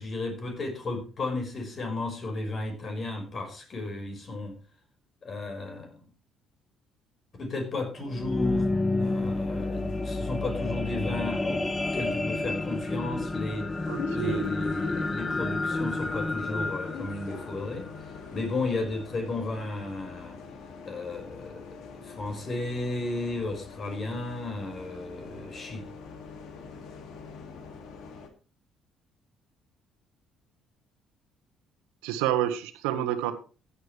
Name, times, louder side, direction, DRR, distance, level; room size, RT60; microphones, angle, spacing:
voice 1, 0.0-4.6 5.2-6.1 7.4-8.7 9.0-11.6 11.9-13.7 14.1-17.9 18.3-20.4 20.8-25.8, left 2 dB, 45° left, 5.7 m, -34 dB
sound 1, 7.9-18.4 19.0-19.1, left 2 dB, 20° left, 1.2 m, -30 dB
Bus, 9.0-28.3, left 4 dB, 65° left, 2.4 m, -43 dB
voice 2, 13.9-14.6 32.0-33.3, right 11 dB, 80° right, 1.5 m, -29 dB
15.5 x 10.0 x 3.4 m
hypercardioid pair, 55°, 0 cm